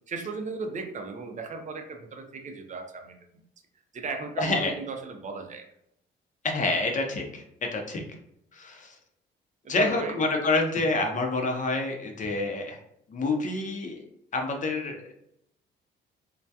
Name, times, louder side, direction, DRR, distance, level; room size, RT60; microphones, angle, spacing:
voice 1, 0.1-3.2 3.9-5.6 9.6-10.2, right 4 dB, 40° right, 4 dB, 0.5 m, -36 dB
voice 2, 4.4-4.7 6.4-8.0 8.5-9.0 9.7-12.8 13.1-14.0 14.3-15.2, left 2 dB, 40° left, 2 dB, 0.6 m, -27 dB
2.2 x 2.2 x 2.7 m, 0.74 s
cardioid pair, 90°, 20 cm